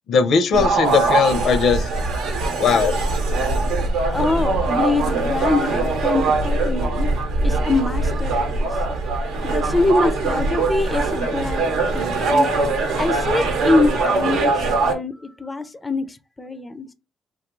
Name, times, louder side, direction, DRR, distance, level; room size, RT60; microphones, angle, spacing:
voice 1, 0.1-1.9 2.6-3.0, left 5 dB, 70° left, 0.5 m, -18 dB
sound 1, 0.5-14.9, right 3 dB, 85° right, 0.8 m, -22 dB
voice 2, 4.0-8.8 9.4-12.7 13.0-16.9, left 3 dB, 20° left, 0.4 m, -24 dB
3.2 x 2.3 x 3.0 m
cardioid pair, 100°, 0 cm